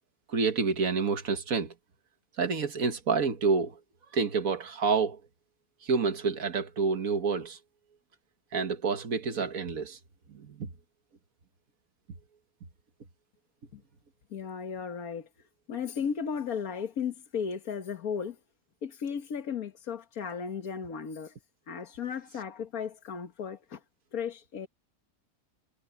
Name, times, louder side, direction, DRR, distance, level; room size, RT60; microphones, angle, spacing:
voice 1, 0.3-1.7 2.4-3.8 4.1-5.2 5.8-7.6 8.5-10.0 10.3-10.7, right 5 dB, 75° right, 1.9 m, -28 dB
voice 2, 14.3-15.3 15.7-18.4 18.8-21.4 21.7-23.8 24.1-24.7, left 6 dB, 85° left, 1.9 m, -35 dB
omnidirectional pair, 1.5 m